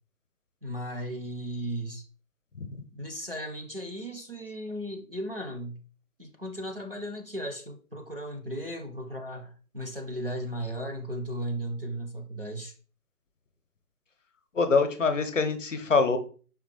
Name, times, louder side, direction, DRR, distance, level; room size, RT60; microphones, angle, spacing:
voice 1, 0.6-2.0 2.9-5.8 6.2-12.7, equal, 40° right, 0.4 m, -36 dB
voice 2, 14.6-16.2, left 4 dB, 55° left, 0.7 m, -24 dB
4.9 x 3.0 x 3.3 m
figure-of-eight pair, 150°, 46 cm